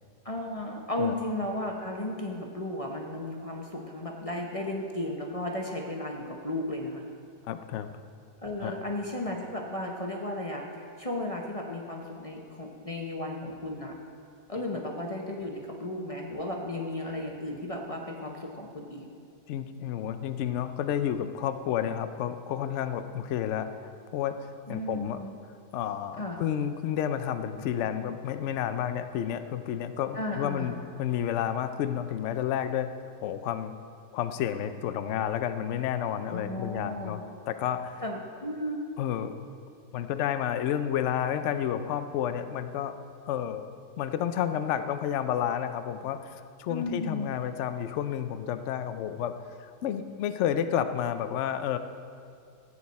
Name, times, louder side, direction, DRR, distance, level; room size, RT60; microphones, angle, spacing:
voice 1, 0.2-7.0 8.4-13.9 14.5-19.1 24.7-25.3 26.2-26.4 30.1-30.8 36.3-37.2 38.0-38.8 46.7-47.3, left 1 dB, 30° left, 0 dB, 0.7 m, -34 dB
voice 2, 7.5-7.9 8.6-8.7 19.5-23.7 24.1-24.3 24.7-25.2 25.7-30.7 31.0-32.9 33.2-33.7 34.1-37.2 37.5-38.0 39.0-39.3 39.9-43.0 43.3-43.7 44.0-46.2 46.6-49.3 49.8-51.8, left 9 dB, 65° left, 10 dB, 0.7 m, -30 dB
15.5 x 8.7 x 4.1 m, 2.5 s
omnidirectional pair, 1.7 m